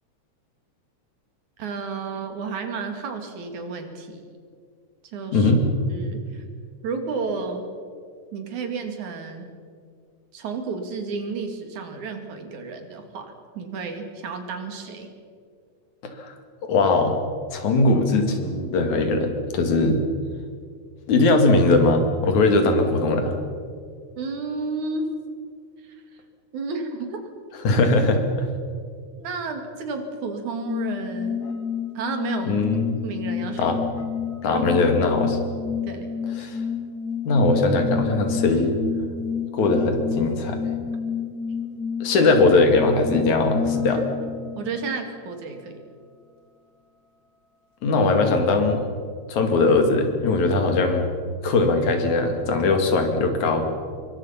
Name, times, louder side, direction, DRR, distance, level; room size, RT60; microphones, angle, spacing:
voice 1, 1.6-4.2 5.1-5.5 5.9-6.4 6.8-7.7 8.3-9.5 10.3-15.1 24.2-25.1 25.8-26.0 26.5-27.2 29.2-31.4 32.0-32.6 33.0-33.8 34.5-34.9 35.8-36.1 43.9-44.1 44.6-45.8, right 4 dB, 75° right, 5 dB, 3.7 m, -32 dB
voice 2, 5.3-5.7 16.0-16.4 16.6-17.2 17.5-20.0 21.1-23.4 27.6-28.5 32.5-33.0 33.6-33.8 34.4-35.4 36.4-36.6 37.3-38.7 39.5-40.6 42.0-44.0 47.8-48.8 49.3-51.1 51.4-53.7, left 3 dB, 75° left, 5 dB, 3.7 m, -20 dB
sound 1, 30.7-45.1, left 7 dB, 45° left, 1.4 m, -29 dB
26.0 x 23.0 x 5.8 m, 2.1 s
omnidirectional pair, 3.4 m